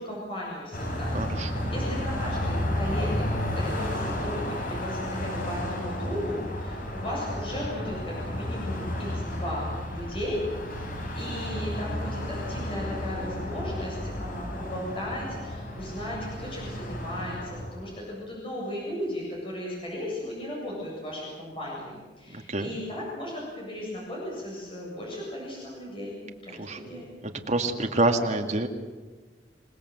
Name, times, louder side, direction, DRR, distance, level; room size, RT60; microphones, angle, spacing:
voice 1, 0.0-26.2 26.4-27.1, left 1 dB, 30° left, -4 dB, 7.9 m, -36 dB
Car passing by, 0.7-17.9, left 1 dB, 50° left, 4.2 m, -32 dB
voice 2, 1.1-1.7 22.3-22.7 26.6-26.8 27.5-28.7, right 2 dB, 40° right, 4 dB, 2.2 m, -27 dB
27.5 x 19.5 x 8.1 m, 1.3 s
head